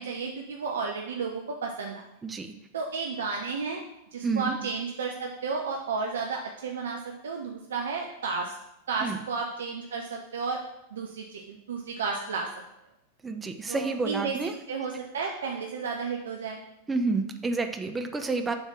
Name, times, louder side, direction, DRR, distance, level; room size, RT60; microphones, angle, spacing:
voice 1, 0.0-2.0 2.7-3.8 4.1-8.5 8.9-10.6 10.9-12.5 13.7-14.4 14.7-16.6, right 4 dB, 65° right, 1 dB, 0.7 m, -32 dB
voice 2, 2.2-2.5 4.2-4.6 9.0-9.2 13.2-14.5 16.9-18.5, right 3 dB, 15° right, 6 dB, 0.7 m, -29 dB
7.1 x 3.6 x 6.0 m, 0.86 s
figure-of-eight pair, 90°, 0 cm